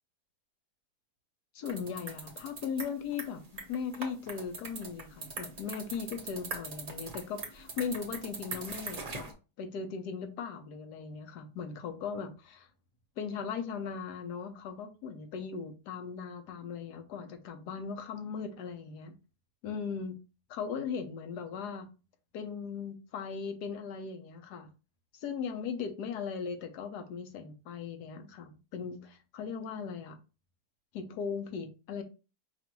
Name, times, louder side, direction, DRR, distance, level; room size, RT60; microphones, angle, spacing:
voice 1, 1.5-9.2 9.6-12.7 13.2-19.2 19.6-20.2 20.5-21.9 22.3-24.7 25.1-30.2 30.9-32.0, left 6 dB, 80° left, 1.3 m, -38 dB
sound 1, 1.6-9.3, right 3 dB, 40° right, 0.9 m, -41 dB
5.2 x 2.6 x 3.0 m
omnidirectional pair, 1.7 m